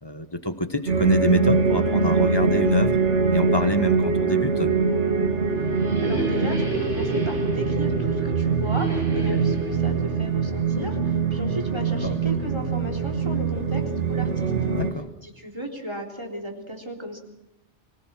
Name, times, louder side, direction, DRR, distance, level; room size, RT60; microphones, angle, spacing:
voice 1, 0.0-3.0 3.3-4.7 9.3-9.5 12.0-12.2 14.7-15.1, left 1 dB, 20° left, 10 dB, 1.3 m, -27 dB
sound 1, 0.9-14.9, right 5 dB, 75° right, 2.2 m, -23 dB
sound 2, 5.0-11.7, equal, 50° right, 4.6 m, -32 dB
voice 2, 6.0-13.8 14.1-14.5 15.2-17.2, equal, 20° right, 1 dB, 3.7 m, -35 dB
24.5 x 17.5 x 7.6 m, 0.92 s
omnidirectional pair, 1.2 m